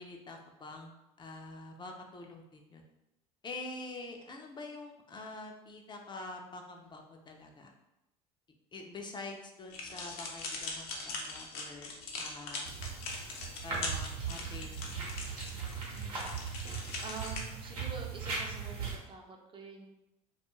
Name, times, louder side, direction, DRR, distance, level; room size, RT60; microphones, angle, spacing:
voice 1, 0.0-2.8 3.4-7.7 8.7-12.7 13.6-15.0, left 2 dB, 25° left, 2 dB, 0.4 m, -46 dB
sound 1, 9.7-17.4, left 3 dB, 70° left, 0.6 m, -41 dB
sound 2, 12.6-19.0, right 5 dB, 85° right, 0.8 m, -39 dB
voice 2, 15.9-16.5 17.0-19.9, right 4 dB, 30° right, 1 dB, 0.5 m, -47 dB
2.3 x 2.3 x 3.0 m, 0.92 s
hypercardioid pair, 75°, 19 cm